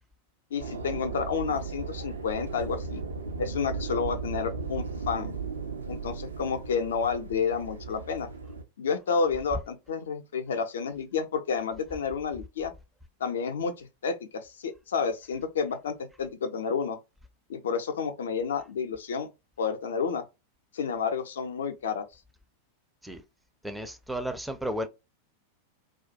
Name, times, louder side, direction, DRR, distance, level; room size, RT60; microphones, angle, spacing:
voice 1, 0.5-3.0 3.4-5.3 5.9-8.3 8.8-12.7 13.2-17.0 17.5-19.3 19.6-20.2 20.7-22.0, left 5 dB, 65° left, 0.4 m, -30 dB
sound 1, 0.6-8.6, right 4 dB, 75° right, 0.4 m, -36 dB
voice 2, 23.6-24.9, equal, 5° right, 0.4 m, -33 dB
2.3 x 2.1 x 2.5 m
figure-of-eight pair, 90°, 0 cm